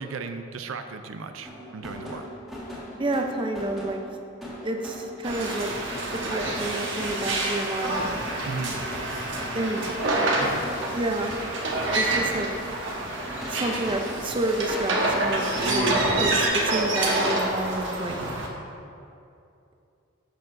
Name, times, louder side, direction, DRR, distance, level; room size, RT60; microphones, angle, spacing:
voice 1, 0.0-2.3 8.5-8.8 9.8-10.0 10.4-10.6, right 4 dB, 80° right, 7 dB, 0.5 m, -36 dB
sound 1, 1.4-16.4, equal, ahead, 1.8 m, -39 dB
voice 2, 3.0-4.0 4.6-5.7 6.1-8.1 9.5-9.9 10.9-11.3 11.9-12.5 13.5-18.2, right 1 dB, 25° right, 3 dB, 0.6 m, -29 dB
sound 2, 5.2-18.5, right 2 dB, 65° right, 1.2 m, -27 dB
12.0 x 6.7 x 2.6 m, 2.6 s
head